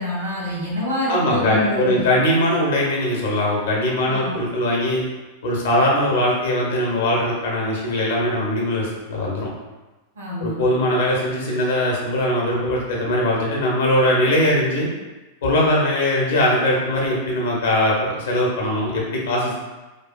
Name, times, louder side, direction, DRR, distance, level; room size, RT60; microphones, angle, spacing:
voice 1, 0.0-2.0 4.0-4.3 10.2-10.6, left 1 dB, 65° right, -8 dB, 0.9 m, -27 dB
voice 2, 1.1-5.0 5.4-9.5 10.4-14.9 15.4-19.6, left 1 dB, 60° left, -2 dB, 0.7 m, -21 dB
2.6 x 2.3 x 2.3 m, 1.1 s
figure-of-eight pair, 90°, 0 cm